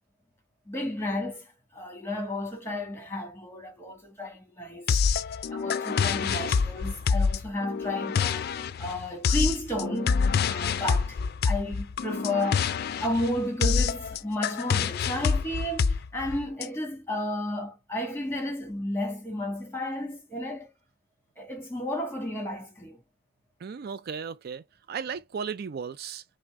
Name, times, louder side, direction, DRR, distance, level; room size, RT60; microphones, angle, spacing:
voice 1, 0.7-4.9 5.5-11.2 11.4-20.7 21.4-23.0, left 1 dB, 15° left, 2.0 m, -32 dB
sound 1, 4.9-16.7, left 5 dB, 55° left, 0.4 m, -27 dB
voice 2, 23.6-26.2, right 6 dB, 55° right, 0.4 m, -35 dB
5.9 x 2.2 x 3.5 m
head